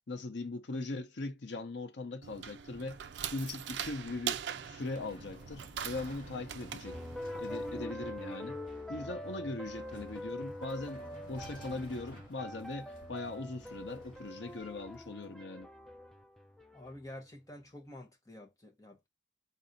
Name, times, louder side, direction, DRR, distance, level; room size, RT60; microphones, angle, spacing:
voice 1, 0.1-3.0 3.3-7.0 7.4-8.6 8.9-15.7, left 2 dB, 70° left, 0.7 m, -40 dB
sound 1, 2.2-7.9, right 9 dB, 70° right, 0.4 m, -42 dB
sound 2, 3.6-15.3, right 1 dB, 50° left, 1.8 m, -56 dB
sound 3, 6.8-17.1, left 1 dB, ahead, 0.4 m, -44 dB
voice 2, 16.7-19.1, left 1 dB, 20° left, 1.0 m, -49 dB
4.0 x 2.6 x 4.0 m
head